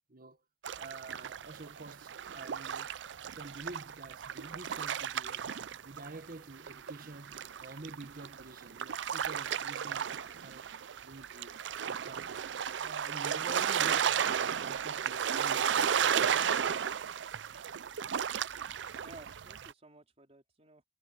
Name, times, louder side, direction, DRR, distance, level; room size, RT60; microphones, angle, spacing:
sound 1, 0.6-6.3 6.6-19.7, right 8 dB, 70° right, 0.5 m, -34 dB
voice 1, 0.7-2.9 3.3-5.5 5.8-10.7 11.0-12.3 12.7-14.2 14.5-17.0, right 2 dB, 50° right, 1.5 m, -48 dB
voice 2, 18.7-20.8, right 2 dB, 35° right, 4.1 m, -56 dB
head